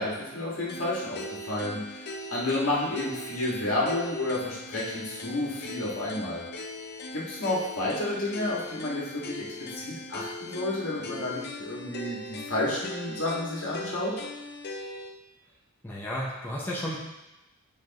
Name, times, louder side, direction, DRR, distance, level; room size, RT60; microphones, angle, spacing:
voice 1, 0.0-6.4 7.1-14.1, left 2 dB, 70° left, -6 dB, 2.1 m, -31 dB
sound 1, 0.7-15.1, left 2 dB, 50° left, 0.6 m, -40 dB
voice 2, 15.8-17.0, equal, 10° left, -5 dB, 0.9 m, -33 dB
7.9 x 5.2 x 3.1 m, 0.96 s
head